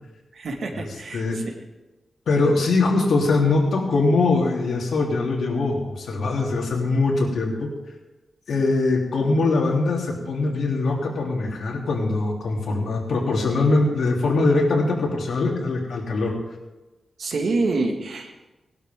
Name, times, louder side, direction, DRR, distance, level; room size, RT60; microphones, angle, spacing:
voice 1, 0.3-1.4 17.2-18.5, right 3 dB, 70° right, 3 dB, 2.0 m, -27 dB
voice 2, 2.3-7.7 8.5-16.3, left 3 dB, 80° left, -1 dB, 3.1 m, -22 dB
20.0 x 12.0 x 3.7 m, 1.1 s
wide cardioid pair, 95°, 0 cm